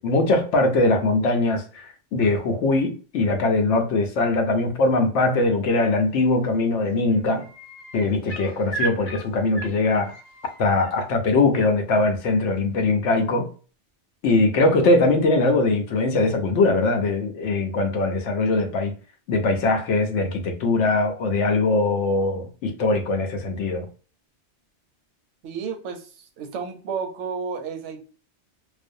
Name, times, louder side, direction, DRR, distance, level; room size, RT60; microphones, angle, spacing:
voice 1, 0.0-7.5 7.9-10.1 10.6-13.5 14.2-18.9 19.3-23.9, left 2 dB, 90° left, 0.9 m, -21 dB
sound 1, 6.2-6.6 6.8-10.9 12.6-12.7, right 3 dB, 65° left, 0.9 m, -35 dB
voice 2, 25.4-28.0, right 6 dB, 85° right, 0.9 m, -32 dB
2.5 x 2.0 x 2.5 m
omnidirectional pair, 1.2 m